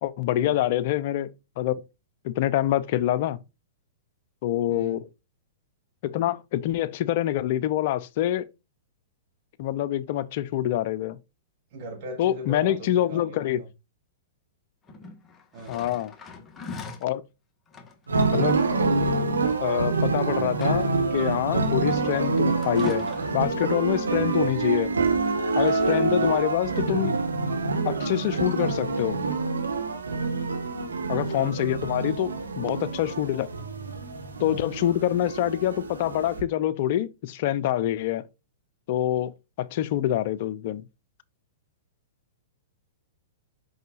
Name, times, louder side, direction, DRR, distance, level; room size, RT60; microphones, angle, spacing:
voice 1, 0.0-1.3 1.6-1.8 2.2-3.4 4.4-5.0 6.0-8.5 9.6-11.2 12.2-13.6 15.7-16.1 17.0-17.2 18.3-18.6 19.6-20.9 21.1-23.1 23.3-24.9 25.6-27.2 27.8-29.2 31.1-33.5 34.4-38.2 38.9-39.3 39.6-40.8, left 12 dB, 55° left, 0.7 m, -26 dB
voice 2, 4.7-5.0 11.7-13.7 15.5-15.8 26.1-26.4 30.1-30.5, right 1 dB, 50° right, 3.7 m, -39 dB
sound 1, 14.9-17.1 17.7-18.4 19.9-20.0 20.4-21.1 22.6-23.5 24.8-25.3 25.6-25.8, left 4 dB, 20° left, 1.7 m, -41 dB
sound 2, 18.1-36.4, right 3 dB, 90° right, 1.7 m, -26 dB
6.5 x 5.6 x 2.6 m
hypercardioid pair, 115°, 0 cm